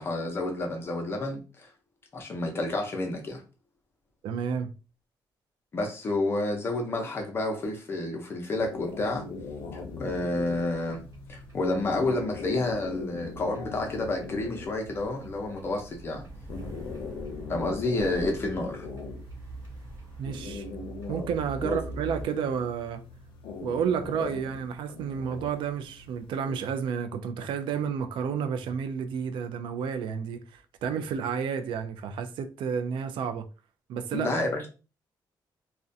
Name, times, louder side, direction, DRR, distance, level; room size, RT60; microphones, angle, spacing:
voice 1, 0.0-1.7 2.1-3.4 5.7-9.2 10.0-11.0 11.3-16.3 17.5-18.9 21.6-21.8 34.1-34.7, left 2 dB, 30° left, 0.6 m, -30 dB
voice 2, 4.2-4.7 20.2-20.6 21.1-23.0 23.6-33.5 33.9-34.4, right 7 dB, 85° right, 0.3 m, -31 dB
sound 1, 8.6-26.6, left 4 dB, 85° left, 0.5 m, -41 dB
sound 2, 9.6-22.3, right 2 dB, 40° right, 0.7 m, -44 dB
2.4 x 2.1 x 2.6 m
cardioid pair, 175°, 8 cm